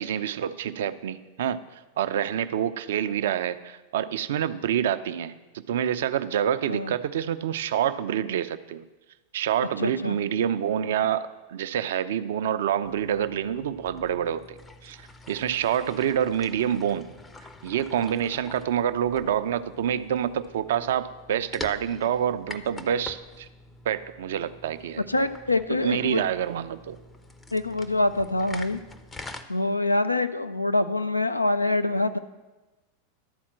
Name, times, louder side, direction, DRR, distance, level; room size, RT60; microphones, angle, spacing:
voice 1, 0.0-1.6 2.0-8.8 9.3-15.0 15.3-17.1 17.6-23.5 23.9-25.1 25.8-27.0, right 9 dB, 55° right, 12 dB, 0.4 m, -27 dB
voice 2, 9.8-10.2 25.1-26.3 27.5-28.8 29.5-32.2, left 2 dB, 85° left, 10 dB, 0.4 m, -25 dB
sound 1, 12.8-29.4, left 2 dB, 10° left, 0.6 m, -45 dB
12.0 x 4.2 x 7.3 m, 1.1 s
figure-of-eight pair, 90°, 0 cm